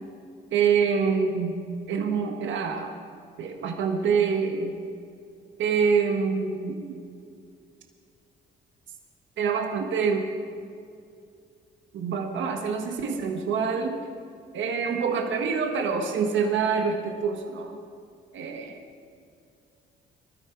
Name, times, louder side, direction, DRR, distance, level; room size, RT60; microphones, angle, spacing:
voice 1, 0.5-1.5 1.9-2.9 3.4-4.7 5.6-6.9 9.4-10.3 11.9-14.1 14.5-17.8 18.3-18.8, right 6 dB, 70° right, 3 dB, 1.4 m, -26 dB
20.5 x 13.0 x 4.7 m, 2.4 s
cardioid pair, 90°, 20 cm